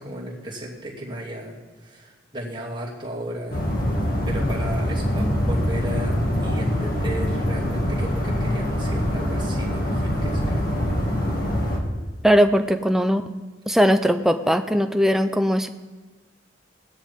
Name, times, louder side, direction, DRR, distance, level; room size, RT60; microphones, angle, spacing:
voice 1, 0.0-1.6 1.8-3.6 4.2-10.7, right 1 dB, 25° right, -5 dB, 2.6 m, -34 dB
sound 1, 3.5-11.8, equal, 50° left, 2.1 m, -24 dB
voice 2, 12.2-13.2 13.7-15.7, equal, ahead, 8 dB, 0.5 m, -19 dB
17.5 x 12.5 x 3.7 m, 1.3 s
head